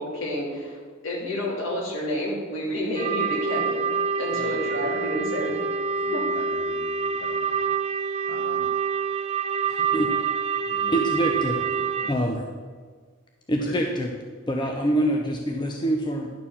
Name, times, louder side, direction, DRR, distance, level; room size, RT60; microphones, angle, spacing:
voice 1, 0.0-3.9 4.2-5.5 6.1-6.2, left 1 dB, 65° left, -4 dB, 3.0 m, -29 dB
sound 1, 3.0-12.1, right 5 dB, 30° right, 0.4 m, -26 dB
voice 2, 4.3-8.7 9.6-10.2 10.7-12.5 13.5-13.9, left 2 dB, 45° left, 1 dB, 0.8 m, -42 dB
voice 3, 10.9-11.6 12.1-12.4 13.5-14.1 14.5-16.3, right 1 dB, 20° left, 2 dB, 0.6 m, -25 dB
10.5 x 4.5 x 7.1 m, 1.6 s
head